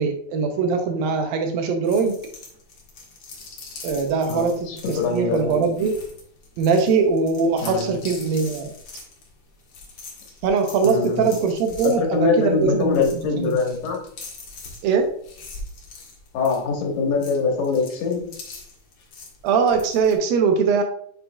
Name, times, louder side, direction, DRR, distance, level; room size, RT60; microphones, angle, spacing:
voice 1, 0.0-2.2 3.8-4.5 4.9-5.9 6.6-8.7 10.4-13.0 14.8-15.1 19.4-20.8, right 5 dB, 75° right, 5 dB, 2.4 m, -21 dB
sound 1, 1.8-20.1, left 3 dB, 50° left, 1.8 m, -42 dB
voice 2, 4.3-5.6 7.6-8.0 10.8-11.2 11.8-14.0 16.3-18.3, left 4 dB, 85° left, 1 dB, 3.4 m, -23 dB
9.3 x 5.8 x 2.3 m, 0.64 s
omnidirectional pair, 4.5 m